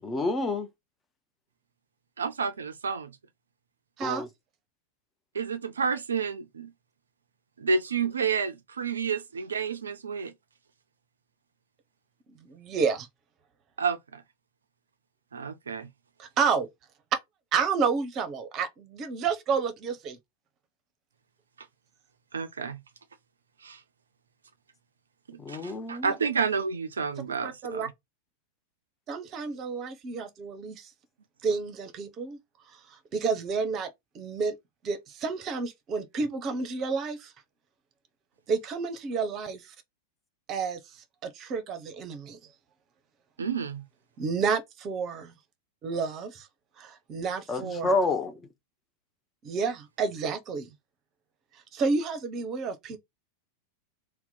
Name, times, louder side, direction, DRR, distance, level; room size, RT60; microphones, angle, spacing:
voice 1, 0.0-0.7 4.0-4.3 25.4-26.1 47.5-48.3, left 2 dB, 15° left, 0.6 m, -28 dB
voice 2, 2.2-3.1 5.3-6.7 7.6-10.3 13.8-14.2 15.3-15.9 22.3-22.8 23.6-23.8 25.3-27.9 43.4-43.8 47.6-47.9, right 5 dB, 70° right, 0.3 m, -30 dB
voice 3, 4.0-4.3 12.5-13.1 16.2-16.7 17.1-17.2 17.5-20.2 27.4-27.9 29.1-30.9 31.4-32.4 32.7-34.5 34.8-37.3 38.5-39.7 40.5-40.8 41.2-42.4 44.2-45.3 45.8-46.5 46.8-48.0 49.4-50.7 51.7-53.0, right 5 dB, 35° right, 0.7 m, -30 dB
2.8 x 2.2 x 3.7 m
figure-of-eight pair, 90°, 0 cm